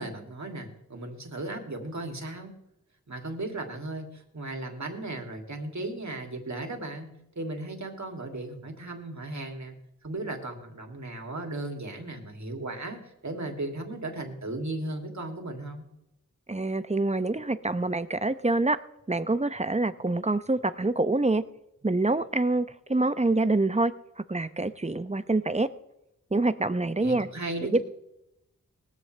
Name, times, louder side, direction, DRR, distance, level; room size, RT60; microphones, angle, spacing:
voice 1, 0.0-2.5 3.1-9.8 10.0-15.9 27.0-27.8, right 2 dB, 60° right, 3 dB, 2.8 m, -36 dB
voice 2, 16.5-18.8 19.1-21.4 21.8-23.9 24.3-25.7 26.3-27.3, right 2 dB, 20° right, 13 dB, 0.8 m, -26 dB
19.5 x 14.0 x 3.4 m, 0.87 s
cardioid pair, 45°, 32 cm